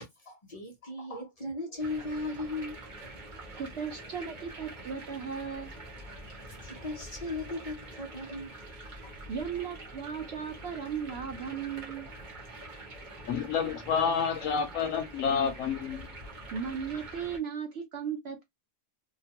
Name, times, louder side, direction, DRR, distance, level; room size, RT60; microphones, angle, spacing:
voice 1, 0.2-3.1 3.6-4.2 6.0-8.6 9.0-9.1 9.5-9.9, left 2 dB, 35° left, 0.7 m, -38 dB
sound 1, 1.8-17.4, right 2 dB, 35° right, 1.1 m, -45 dB
voice 2, 3.6-5.8 9.3-12.1 16.5-18.4, right 7 dB, 60° right, 0.8 m, -36 dB
voice 3, 13.2-16.1, left 6 dB, 70° left, 1.0 m, -29 dB
2.9 x 2.2 x 2.8 m
omnidirectional pair, 1.5 m